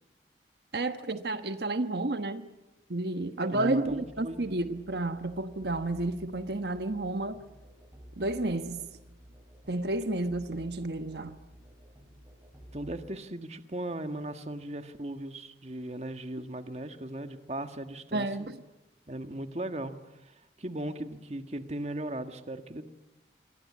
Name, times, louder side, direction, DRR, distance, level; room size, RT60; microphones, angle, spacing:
voice 1, 0.7-2.5 2.9-7.4 8.2-8.9 9.7-11.4 18.1-18.6, right 2 dB, 70° right, 1.2 m, -31 dB
voice 2, 3.5-4.5 12.7-18.5 19.1-22.8, right 1 dB, 35° right, 1.5 m, -38 dB
Musical instrument, 3.9-13.1, equal, 15° right, 4.9 m, -52 dB
27.0 x 23.5 x 8.5 m
head